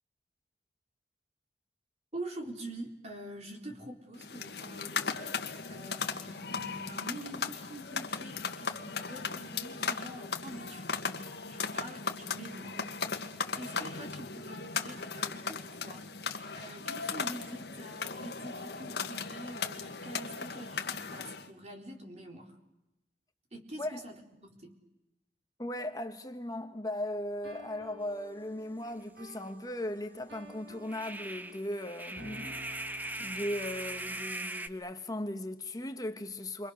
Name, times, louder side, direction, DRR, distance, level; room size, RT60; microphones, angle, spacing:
voice 1, 2.1-12.9 13.6-22.6 23.5-24.2 24.4-24.8, right 1 dB, 35° right, 4.2 m, -46 dB
sound 1, 4.2-21.5, left 5 dB, 65° left, 1.9 m, -37 dB
voice 2, 25.6-32.6 33.0-36.7, left 1 dB, 20° left, 1.3 m, -38 dB
sound 2, 27.4-34.4, equal, 65° right, 2.9 m, -52 dB
sound 3, 28.9-29.0 29.3-29.4 30.8-34.7, right 1 dB, 10° right, 1.0 m, -40 dB
29.5 x 25.0 x 6.6 m
head